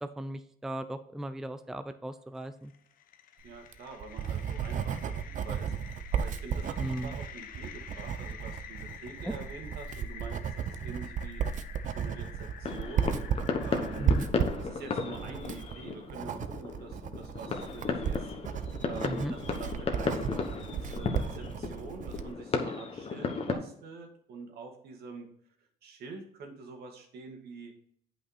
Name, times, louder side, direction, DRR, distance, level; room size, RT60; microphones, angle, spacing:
voice 1, 0.0-2.7 6.8-7.1 14.0-14.3 19.1-19.3, right 1 dB, 5° right, 10 dB, 0.5 m, -36 dB
sound 1, 2.4-14.3, left 9 dB, 55° left, 0.9 m, -49 dB
voice 2, 3.4-5.1 5.4-11.4 11.9-13.2 13.6-14.2 14.6-25.3 25.8-27.7, right 4 dB, 70° right, 3 dB, 2.2 m, -46 dB
Writing, 3.6-22.3, right 7 dB, 50° right, 0.7 m, -34 dB
sound 2, 12.6-23.5, left 4 dB, 35° left, 1.3 m, -35 dB
8.7 x 5.5 x 4.1 m, 0.65 s
cardioid pair, 110°, 17 cm